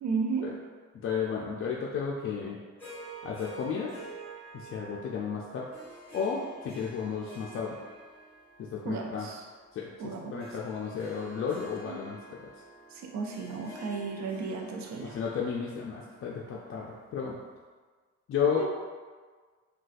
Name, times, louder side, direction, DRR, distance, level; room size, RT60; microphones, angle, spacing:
voice 1, 0.0-0.5 8.8-9.5 10.0-10.4 11.9-12.0 12.9-15.2 18.5-18.7, right 5 dB, 65° right, 2 dB, 0.6 m, -34 dB
voice 2, 1.0-2.6 3.2-3.9 4.5-5.7 6.1-7.8 8.6-9.3 9.7-12.2 15.0-17.4 18.3-18.7, left 6 dB, 45° left, -3 dB, 0.4 m, -33 dB
Harp, 2.8-17.2, right 2 dB, 5° left, 1.4 m, -49 dB
3.9 x 2.3 x 2.5 m, 1.5 s
cardioid pair, 90°, 30 cm